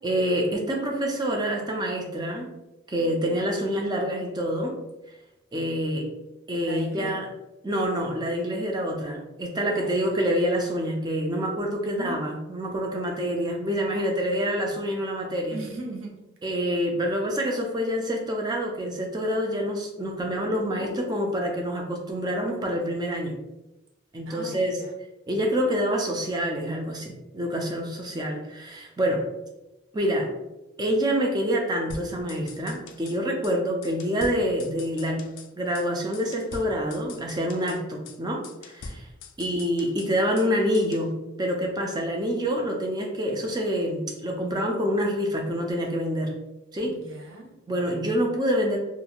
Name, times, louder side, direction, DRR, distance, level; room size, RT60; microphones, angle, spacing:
voice 1, 0.0-2.5 2.9-4.8 5.5-6.1 6.5-7.3 7.6-15.6 16.4-23.4 24.1-24.8 25.3-29.2 29.9-30.3 30.8-35.3 35.6-39.1 39.4-46.3 46.7-47.0 47.7-48.8, equal, 20° right, 1 dB, 0.4 m, -27 dB
voice 2, 6.6-7.1 9.7-10.1 11.8-12.2 15.5-16.2 20.8-21.2 24.3-24.9 46.8-47.5, right 2 dB, 65° right, -1 dB, 0.6 m, -38 dB
sound 1, 31.9-33.2 33.4-33.6 33.8-35.5 35.7-35.9 36.1-37.8 38.0-38.2 38.4-40.5 40.7-41.1, left 4 dB, 65° left, 0.3 m, -43 dB
2.5 x 2.3 x 2.8 m, 0.97 s
head